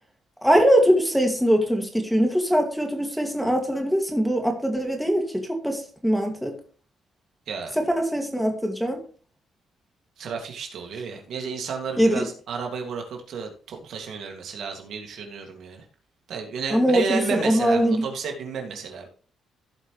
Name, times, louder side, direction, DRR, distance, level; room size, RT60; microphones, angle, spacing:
voice 1, 0.4-6.5 7.8-9.0 12.0-12.3 16.7-18.1, equal, ahead, 4 dB, 2.3 m, -22 dB
voice 2, 7.5-7.8 10.2-15.8 16.3-19.1, right 5 dB, 65° right, 2 dB, 2.3 m, -32 dB
15.5 x 5.4 x 3.2 m, 0.41 s
cardioid pair, 90°, 0 cm